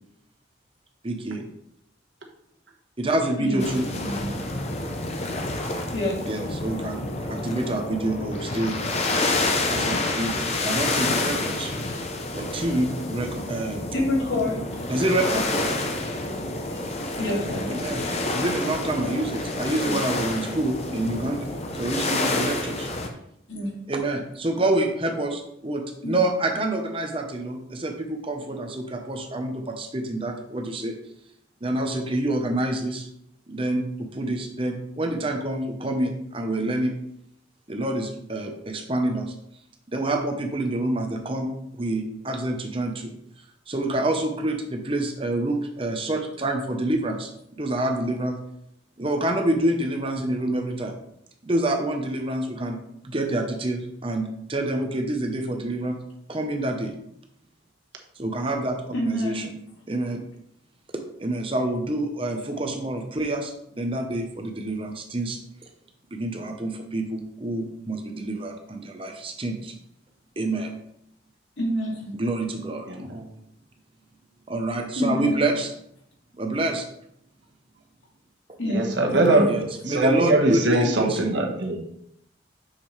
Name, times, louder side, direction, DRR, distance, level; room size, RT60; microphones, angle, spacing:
voice 1, 1.0-1.5 3.0-3.9 6.3-7.0 7.3-8.8 9.7-11.7 12.3-13.8 14.9-15.4 17.7-18.0 18.3-21.5 21.7-22.9 23.9-31.0 31.6-33.1 33.5-36.9 37.7-39.3 39.9-43.1 43.7-47.3 47.6-48.4 49.0-50.9 51.4-52.8 53.0-56.0 56.3-56.9 58.2-59.5 59.9-60.2 60.9-65.4 66.1-69.7 70.4-70.7 72.1-72.9 74.5-75.7 76.4-76.8 79.5-81.3, right 1 dB, 30° right, 4 dB, 0.8 m, -27 dB
sound 1, 3.6-23.1, left 2 dB, 35° left, 0.7 m, -28 dB
voice 2, 3.9-4.4 5.9-6.2 13.9-14.6 17.2-17.7 19.9-20.0 23.5-23.7 26.0-26.2 58.9-59.5 71.6-72.2 75.0-75.5 78.6-79.5, left 1 dB, 75° left, -3 dB, 2.3 m, -27 dB
voice 3, 72.9-73.3 78.7-81.9, right 2 dB, 70° right, 1 dB, 1.3 m, -22 dB
6.7 x 6.6 x 3.2 m, 0.75 s
head